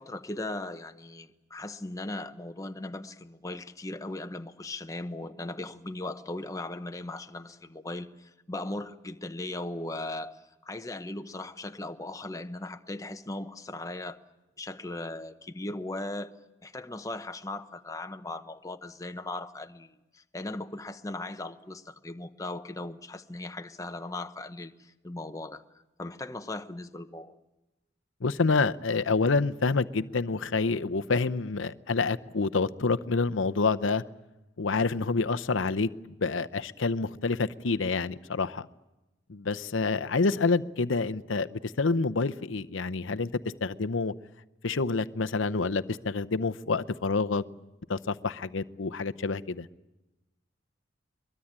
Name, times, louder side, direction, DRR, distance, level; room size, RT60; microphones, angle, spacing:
voice 1, 0.0-10.4 10.6-14.2 14.6-16.3 16.6-19.9 20.1-24.7 25.0-25.6 26.0-27.4, left 2 dB, 15° left, 8 dB, 0.8 m, -38 dB
voice 2, 28.2-34.0 34.6-38.7 39.3-43.3 43.6-44.1 44.6-47.4 47.9-49.7, left 4 dB, 85° left, 11 dB, 0.8 m, -28 dB
23.0 x 21.5 x 8.8 m, 1.0 s
head